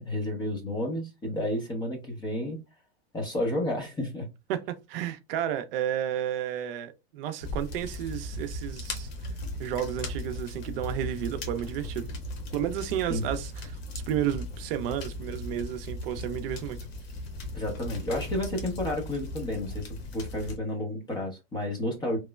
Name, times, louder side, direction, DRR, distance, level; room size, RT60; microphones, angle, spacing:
voice 1, 0.0-2.6 3.1-4.3 13.1-13.2 17.5-22.2, left 1 dB, 15° left, 0.6 m, -31 dB
voice 2, 4.5-9.1 9.6-12.1 12.5-16.8, right 10 dB, 65° right, 0.5 m, -32 dB
sound 1, 7.4-20.6, left 1 dB, 70° left, 1.0 m, -37 dB
3.0 x 2.0 x 2.2 m
supercardioid pair, 140°, 32 cm